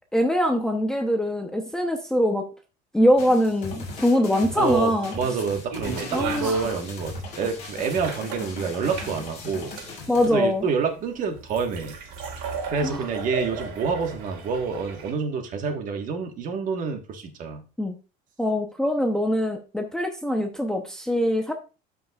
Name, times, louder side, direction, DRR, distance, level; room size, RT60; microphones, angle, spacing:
voice 1, 0.1-2.5 2.9-5.1 6.1-6.6 10.1-10.6 12.8-13.1 17.8-17.9 18.4-21.5, equal, 5° left, 2 dB, 0.7 m, -23 dB
sound 1, 3.2-10.3, left 3 dB, 35° left, 4.9 m, -38 dB
voice 2, 4.6-9.7 10.3-11.9 12.6-17.6, right 5 dB, 40° right, 5 dB, 1.4 m, -27 dB
sound 2, 5.7-15.1, right 5 dB, 70° right, 3.1 m, -35 dB
13.0 x 5.4 x 2.4 m, 0.32 s
cardioid pair, 160°, 20 cm